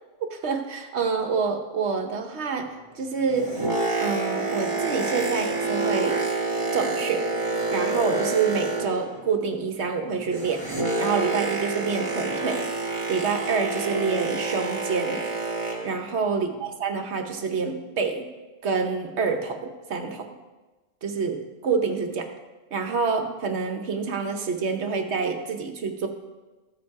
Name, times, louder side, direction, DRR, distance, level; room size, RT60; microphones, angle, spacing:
voice 1, 0.3-3.5 4.0-6.2 6.7-7.3 7.7-10.6 11.0-12.6 13.1-15.2 15.8-18.3 18.6-20.3 21.0-22.3 22.7-26.1, right 5 dB, 65° right, 5 dB, 1.2 m, -27 dB
Boat Water vehicle, 3.1-9.2 9.5-16.0 16.6-16.7, right 3 dB, 25° right, 1.6 m, -28 dB
14.5 x 5.0 x 4.6 m, 1.2 s
omnidirectional pair, 1.3 m